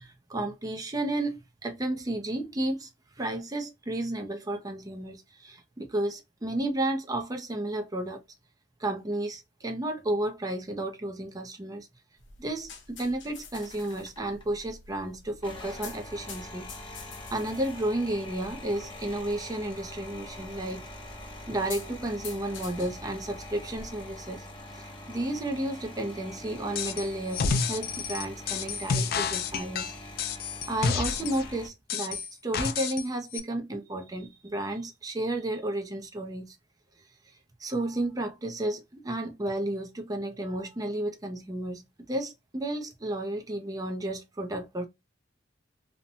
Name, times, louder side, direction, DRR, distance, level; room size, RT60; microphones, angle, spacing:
voice 1, 0.0-2.9 3.2-8.2 8.8-11.9 12.4-16.7 17.3-20.8 21.5-24.5 24.7-29.9 30.7-36.6 37.6-44.9, right 1 dB, 20° right, 0.5 m, -32 dB
sound 1, 12.2-24.6, left 5 dB, 75° left, 0.8 m, -48 dB
sound 2, 13.5-14.6 15.3-31.7, left 1 dB, 25° left, 0.7 m, -44 dB
sound 3, 26.8-27.1 27.3-31.5 31.9-33.1 33.3-33.4, left 5 dB, 50° left, 0.3 m, -29 dB
2.8 x 2.1 x 2.6 m
head